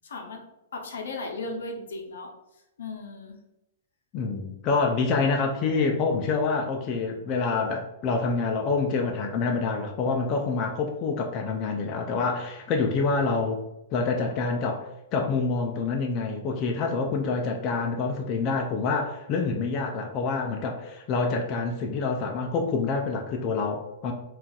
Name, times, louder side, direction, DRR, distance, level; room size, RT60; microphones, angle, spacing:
voice 1, 0.0-0.4 0.7-2.3 2.8-3.4, left 3 dB, 80° left, 2 dB, 0.6 m, -36 dB
voice 2, 4.1-13.6 13.9-24.1, left 4 dB, 35° left, 2 dB, 0.4 m, -27 dB
3.8 x 2.4 x 2.3 m, 0.89 s
hypercardioid pair, 120°, 0 cm